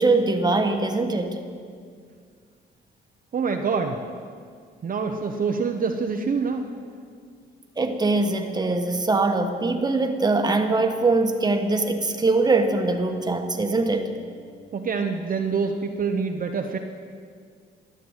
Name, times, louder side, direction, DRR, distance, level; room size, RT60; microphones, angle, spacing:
voice 1, 0.0-1.4 7.8-14.1, right 3 dB, 20° right, 5 dB, 1.4 m, -22 dB
voice 2, 3.3-4.0 4.8-6.6 14.7-16.8, right 5 dB, 45° right, 4 dB, 0.9 m, -26 dB
12.5 x 8.9 x 8.1 m, 2.1 s
cardioid pair, 90°, 20 cm